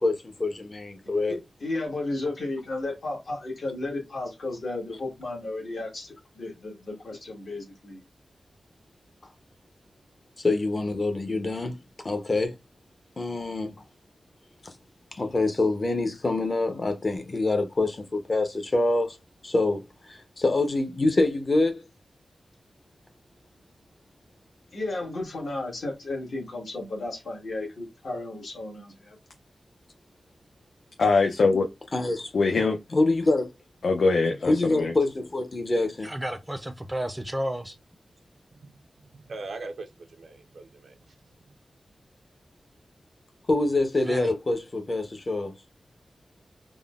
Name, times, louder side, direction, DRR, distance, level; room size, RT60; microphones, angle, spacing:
voice 1, 1.3-8.0 24.7-29.2, left 2 dB, 70° left, 1.3 m, -34 dB
voice 2, 10.4-12.5 13.2-13.7 15.1-19.2 19.4-21.8 31.9-32.3 32.9-33.5 34.5-36.1 43.5-45.5, left 2 dB, 35° left, 0.6 m, -25 dB
voice 3, 31.0-31.7 32.3-32.8 33.8-34.9, left 3 dB, 85° left, 0.4 m, -22 dB
voice 4, 36.0-37.8 44.0-44.3, equal, 10° right, 0.4 m, -32 dB
voice 5, 39.1-41.1, right 3 dB, 80° right, 0.4 m, -41 dB
3.5 x 2.0 x 2.3 m
wide cardioid pair, 130°, 0 cm